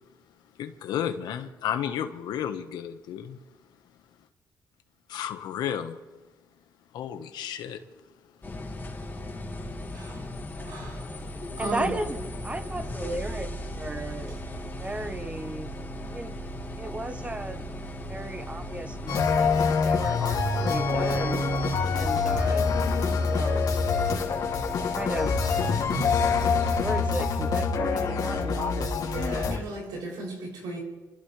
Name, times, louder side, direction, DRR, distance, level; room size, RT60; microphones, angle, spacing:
voice 1, 0.6-3.4 5.1-6.0 6.9-7.8, left 9 dB, 90° left, 1.4 m, -32 dB
sound 1, 8.4-27.0, equal, 25° left, 3.3 m, -37 dB
voice 2, 10.6-11.0 11.6-11.9 29.1-30.8, right 2 dB, 90° right, 7.4 m, -35 dB
voice 3, 11.6-14.3 14.8-15.7 16.1-16.3 16.8-17.6 18.1-19.5 19.8-21.4 21.9-22.7 23.2-24.0 24.9-25.5 26.8-29.2, right 1 dB, 20° right, 1.2 m, -35 dB
sound 2, 19.1-29.6, left 4 dB, 65° left, 2.7 m, -25 dB
28.5 x 14.5 x 3.4 m
cardioid pair, 95°, 7 cm